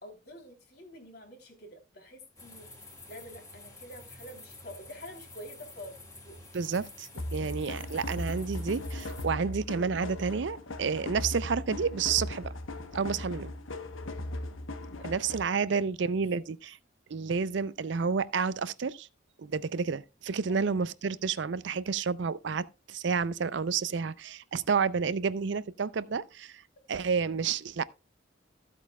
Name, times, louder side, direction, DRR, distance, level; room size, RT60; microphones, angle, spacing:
voice 1, 0.0-2.7 3.1-6.3 7.4-7.6 14.9-15.1 20.5-20.7, equal, 55° left, 3.3 m, -48 dB
sound 1, 2.4-9.3, left 2 dB, 15° left, 2.8 m, -49 dB
voice 2, 6.5-12.5 12.9-13.5 15.0-16.8 17.1-19.1 19.4-26.6 26.9-27.8, right 5 dB, 65° right, 0.5 m, -30 dB
sound 2, 7.2-15.6, left 1 dB, 90° left, 1.1 m, -38 dB
14.5 x 8.3 x 2.3 m
head